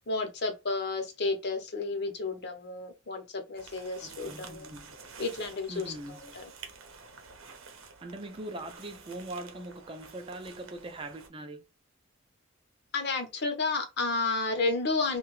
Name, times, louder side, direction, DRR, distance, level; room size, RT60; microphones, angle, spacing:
voice 1, 0.0-4.7 5.2-6.5 12.9-15.2, left 3 dB, 55° left, 0.8 m, -32 dB
sound 1, 3.5-11.3, right 5 dB, 85° right, 0.7 m, -50 dB
voice 2, 4.0-5.0 5.7-6.4 8.0-11.7, right 2 dB, 25° right, 0.4 m, -41 dB
2.7 x 2.2 x 3.1 m
head